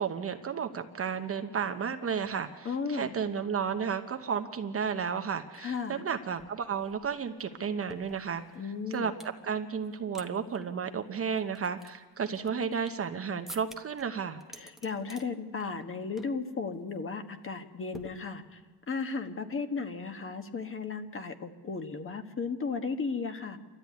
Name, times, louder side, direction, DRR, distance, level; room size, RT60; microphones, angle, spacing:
voice 1, 0.0-8.4 8.9-9.1 9.4-14.4, right 6 dB, 30° right, 7 dB, 0.9 m, -33 dB
voice 2, 2.6-3.1 5.6-6.0 8.5-9.1 14.5-18.6 18.9-23.6, left 4 dB, 30° left, 8 dB, 1.4 m, -35 dB
sound 1, 6.1-6.2 6.4-9.4 9.8-10.3 10.5-10.6 11.2-13.1 13.5-14.0 14.4-15.3 15.6-15.9 16.2-16.4 16.7-17.0 17.9-18.7, right 1 dB, ahead, 1.0 m, -50 dB
28.0 x 13.0 x 9.5 m, 1.4 s
cardioid pair, 150°, 44 cm